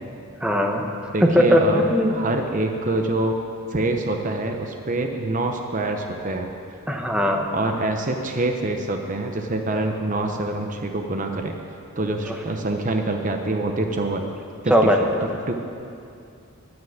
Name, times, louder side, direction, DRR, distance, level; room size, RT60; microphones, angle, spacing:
voice 1, 0.4-0.9 1.2-2.2 6.9-7.5 12.3-12.4 14.7-15.0, equal, 5° right, 2 dB, 0.9 m, -19 dB
voice 2, 1.1-1.8 2.1-3.4 3.7-6.5 7.5-11.5 12.0-14.2 14.6-14.9 15.5-15.6, right 2 dB, 35° right, 4 dB, 0.8 m, -25 dB
10.5 x 9.5 x 8.7 m, 2.5 s
head